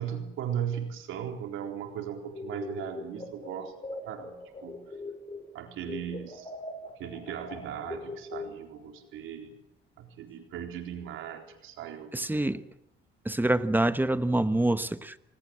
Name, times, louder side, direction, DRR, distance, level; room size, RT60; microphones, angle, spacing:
voice 1, 0.0-3.8 4.0-4.3 4.6-4.8 5.5-6.5 7.0-9.5 10.0-12.6, right 9 dB, 90° right, 5 dB, 4.0 m, -37 dB
sound 1, 2.3-5.5 5.8-8.9, left 2 dB, 30° left, 6.8 m, -41 dB
voice 2, 12.1-12.6 13.2-15.2, right 1 dB, 10° right, 13 dB, 1.3 m, -26 dB
28.0 x 20.5 x 7.7 m, 0.77 s
cardioid pair, 90°, 20 cm